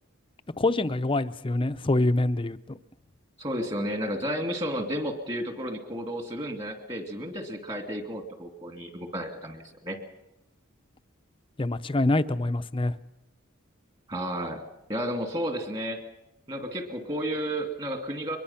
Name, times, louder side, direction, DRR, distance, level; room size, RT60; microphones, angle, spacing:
voice 1, 0.6-2.8 11.6-13.0, left 2 dB, 25° left, 11 dB, 0.7 m, -25 dB
voice 2, 3.4-10.0 14.1-14.6 14.9-16.0 16.5-18.4, equal, 30° right, 4 dB, 2.6 m, -32 dB
23.5 x 21.5 x 5.8 m, 0.88 s
head